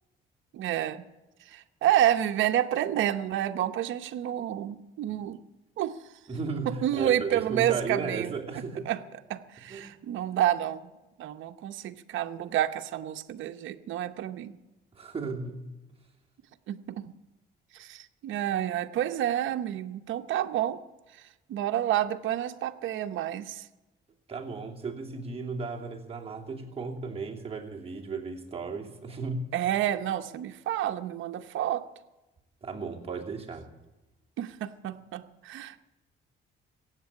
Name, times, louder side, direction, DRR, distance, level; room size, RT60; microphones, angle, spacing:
voice 1, 0.5-1.0 1.4-5.4 5.8-6.0 6.7-8.4 8.9-9.0 9.3-10.8 11.2-14.6 16.7-17.1 17.7-20.8 21.1-21.2 21.5-23.7 29.5-31.8 34.4-35.8, right 12 dB, 80° right, 7 dB, 0.8 m, -29 dB
voice 2, 6.3-8.9 9.7-9.9 14.9-15.6 24.3-29.5 32.6-33.7, right 4 dB, 30° right, -1 dB, 2.8 m, -35 dB
15.5 x 8.3 x 9.7 m, 1.1 s
cardioid pair, 90°, 20 cm